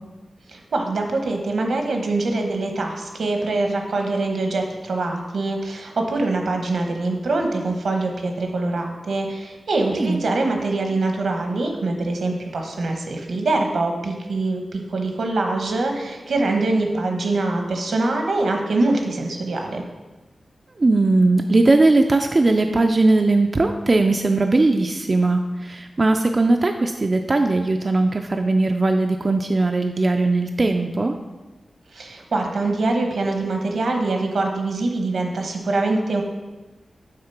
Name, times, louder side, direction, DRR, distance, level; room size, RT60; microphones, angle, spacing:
voice 1, 0.5-19.8 31.9-36.2, right 2 dB, 80° right, 3 dB, 1.0 m, -24 dB
voice 2, 20.8-31.1, right 2 dB, 35° right, 5 dB, 0.3 m, -19 dB
6.6 x 3.7 x 5.8 m, 1.2 s
wide cardioid pair, 100°, 0 cm